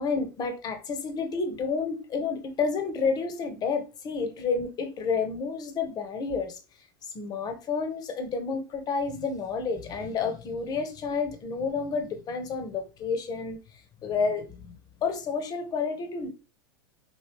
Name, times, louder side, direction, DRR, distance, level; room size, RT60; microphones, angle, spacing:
voice 1, 0.0-6.6 7.1-14.6 15.0-16.3, left 5 dB, 30° left, 0.9 m, -30 dB
4.5 x 2.6 x 3.3 m
hypercardioid pair, 95°, 13 cm